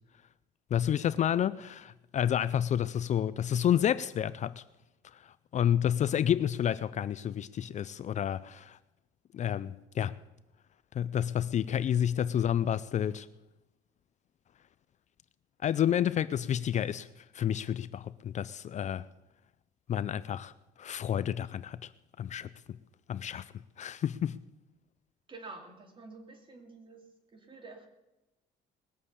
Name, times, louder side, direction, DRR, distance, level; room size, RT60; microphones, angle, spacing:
voice 1, 0.7-4.6 5.1-8.8 9.3-10.2 10.9-13.3 15.6-17.1 17.3-19.1 19.9-20.5 20.8-21.9 22.2-22.5 23.1-23.5 23.8-24.4, left 10 dB, 45° left, 0.5 m, -30 dB
voice 2, 25.3-27.9, right 3 dB, 30° right, 3.0 m, -49 dB
20.0 x 7.3 x 8.3 m
cardioid pair, 110°, 17 cm